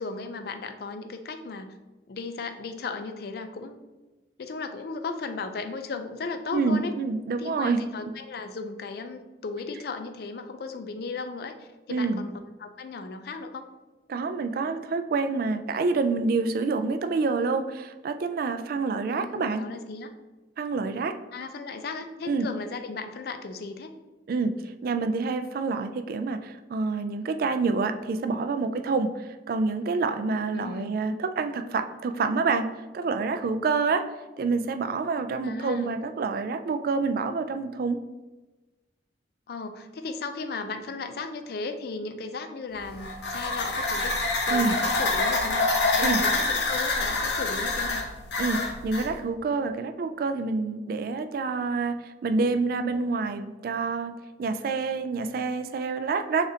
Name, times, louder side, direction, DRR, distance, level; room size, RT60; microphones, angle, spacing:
voice 1, 0.0-1.8 2.1-3.8 4.4-6.9 7.4-12.3 12.6-13.7 19.1-20.1 21.3-23.9 30.5-31.1 35.4-36.0 39.5-44.2 44.5-45.7 46.0-48.0, left 4 dB, 60° left, 7 dB, 0.4 m, -36 dB
voice 2, 6.5-8.1 11.9-12.2 14.1-19.7 20.6-21.2 22.3-22.5 24.3-24.5 24.8-34.1 34.4-38.0 44.5-44.8 46.0-46.2 48.4-56.5, right 4 dB, 55° right, 9 dB, 0.3 m, -27 dB
sound 1, 42.8-49.1, left 2 dB, 90° left, 0.8 m, -26 dB
6.5 x 2.5 x 2.8 m, 1.2 s
head